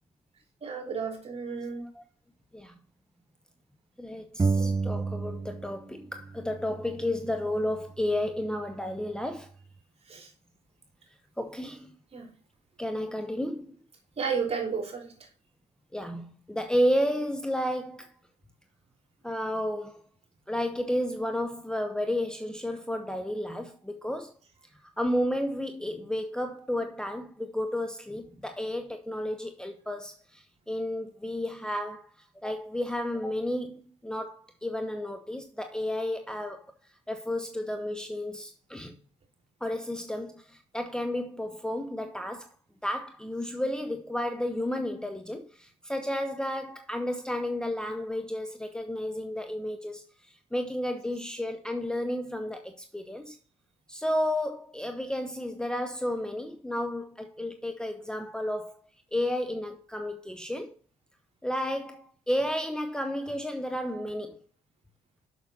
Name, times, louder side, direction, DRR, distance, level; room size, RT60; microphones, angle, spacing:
voice 1, 0.6-1.9 4.6-4.7 10.1-10.3 12.1-12.3 14.2-15.1, right 5 dB, 45° right, 3.5 m, -32 dB
voice 2, 4.0-9.5 11.4-11.9 12.8-13.8 15.9-18.1 19.2-20.0 20.5-24.3 25.0-32.1 32.4-36.7 37.1-39.0 39.6-42.5 42.8-50.0 50.5-53.4 53.9-58.8 59.1-60.7 61.4-64.4, left 1 dB, 5° left, 1.0 m, -32 dB
sound 1, 4.4-5.9 6.2-7.9, right 4 dB, 20° right, 0.6 m, -31 dB
7.0 x 6.3 x 4.2 m
hypercardioid pair, 50°, 15 cm